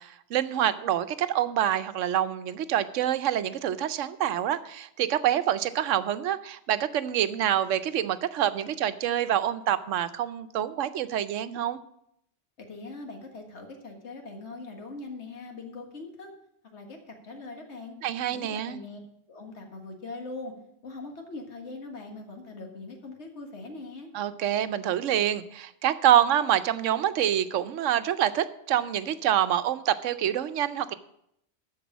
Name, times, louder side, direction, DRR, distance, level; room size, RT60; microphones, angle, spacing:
voice 1, 0.0-11.8 18.0-18.8 24.1-30.9, right 11 dB, 80° right, 13 dB, 1.0 m, -26 dB
voice 2, 12.6-16.3 16.7-18.0 18.3-19.0 19.3-20.5 20.8-24.1, left 3 dB, 65° left, 3 dB, 1.9 m, -41 dB
13.0 x 4.8 x 7.3 m, 0.76 s
omnidirectional pair, 1.3 m